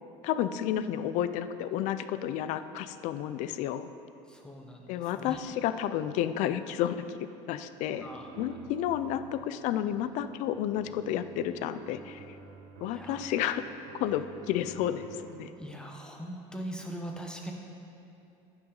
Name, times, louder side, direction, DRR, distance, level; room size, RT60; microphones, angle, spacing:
voice 1, 0.2-3.9 4.9-7.2 7.5-8.1 8.4-12.4 12.8-13.6 14.0-15.5, left 10 dB, 55° left, 12 dB, 0.4 m, -31 dB
voice 2, 4.3-5.4 8.0-8.3 12.9-13.2 15.6-17.5, right 1 dB, 5° left, 1 dB, 0.9 m, -41 dB
sound 1, 7.9-15.5, right 5 dB, 55° right, 0.8 m, -50 dB
14.5 x 5.8 x 3.9 m, 2.7 s
cardioid pair, 150°, 14 cm